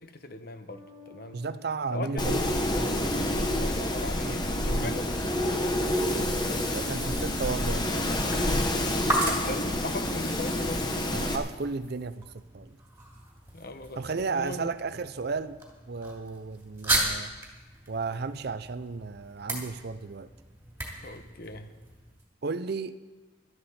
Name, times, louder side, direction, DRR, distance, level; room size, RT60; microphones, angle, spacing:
voice 1, 0.0-1.4 1.9-2.4 3.4-5.1 9.0-11.3 13.5-14.7 21.0-21.8, left 2 dB, 45° left, 8 dB, 0.9 m, -39 dB
Bass guitar, 0.7-4.2, left 4 dB, 80° left, 4.6 m, -56 dB
voice 2, 1.3-2.5 4.7-4.9 6.7-8.0 11.1-12.3 12.5-12.8 14.0-17.3 17.9-20.3 22.4-23.0, right 4 dB, 50° right, 13 dB, 0.5 m, -33 dB
Wind, 2.2-11.4, left 1 dB, 20° left, 1.0 m, -28 dB
sound 1, 4.5-22.2, right 1 dB, 10° right, 2.6 m, -37 dB
15.5 x 12.5 x 4.3 m, 1.3 s
head